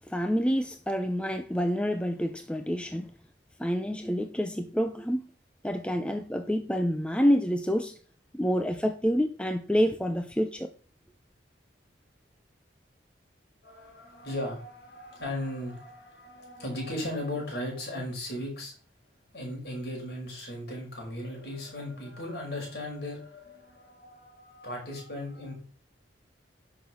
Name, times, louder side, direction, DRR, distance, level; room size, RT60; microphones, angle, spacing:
voice 1, 0.1-3.1 3.6-5.2 5.6-8.0 8.3-10.7, equal, 5° left, 0.7 m, -27 dB
voice 2, 13.6-18.7 19.3-25.5, left 1 dB, 55° left, 5.8 m, -37 dB
11.0 x 6.4 x 6.2 m
head